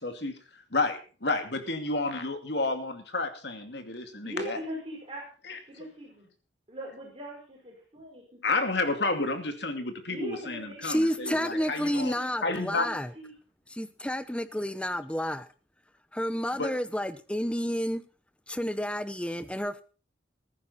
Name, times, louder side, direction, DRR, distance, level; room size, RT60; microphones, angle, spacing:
voice 1, 0.0-0.4 0.7-4.6 5.5-5.6 8.4-12.9 16.5-16.7, left 3 dB, 65° left, 2.5 m, -31 dB
voice 2, 4.1-5.2 5.8-6.3 6.7-8.4 10.0-12.1 12.3-13.3, equal, 30° right, 5.4 m, -41 dB
voice 3, 10.8-13.1 13.7-15.5 16.1-18.0 18.5-19.8, equal, 5° left, 0.9 m, -30 dB
15.5 x 14.0 x 4.2 m
head